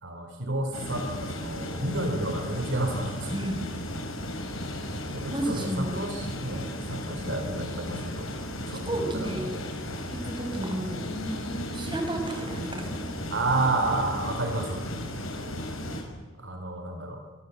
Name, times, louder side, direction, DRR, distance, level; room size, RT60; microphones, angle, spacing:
voice 1, 0.0-3.3 4.8-8.3 8.7-9.8 13.3-14.9 16.4-17.2, right 2 dB, 60° right, 5 dB, 4.0 m, -31 dB
sound 1, 0.7-16.0, left 1 dB, 90° left, 5.8 m, -35 dB
voice 2, 3.3-3.6 5.3-6.0 8.9-9.4 10.1-13.2, right 1 dB, 25° right, 3 dB, 6.2 m, -32 dB
sound 2, 4.4-12.4, left 1 dB, 75° left, 6.2 m, -47 dB
25.5 x 25.0 x 8.2 m, 1.4 s
head